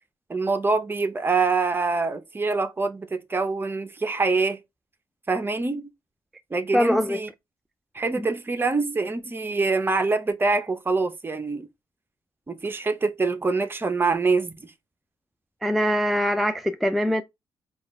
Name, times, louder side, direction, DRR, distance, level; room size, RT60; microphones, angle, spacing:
voice 1, 0.3-4.6 5.3-5.9 6.5-7.3 7.9-11.7 12.5-14.7, right 3 dB, 25° right, 0.7 m, -25 dB
voice 2, 6.7-7.2 8.1-8.3 15.6-17.2, equal, ahead, 0.3 m, -23 dB
5.1 x 2.4 x 3.1 m
cardioid pair, 75°, 9 cm